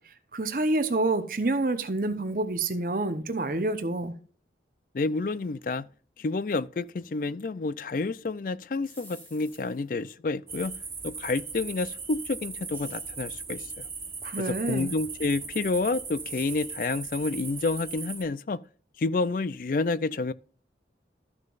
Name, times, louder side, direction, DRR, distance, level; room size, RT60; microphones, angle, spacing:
voice 1, 0.3-4.1 14.2-14.9, right 2 dB, 50° right, 0.9 m, -28 dB
voice 2, 4.9-5.9 6.2-10.7 11.0-13.9 14.4-18.6 19.0-20.3, left 3 dB, 50° left, 0.4 m, -29 dB
sound 1, 8.8-9.9 12.7-13.3 16.1-16.8, equal, 10° left, 3.0 m, -50 dB
sound 2, 10.5-18.2, right 5 dB, 15° right, 1.1 m, -38 dB
13.5 x 6.5 x 2.5 m
head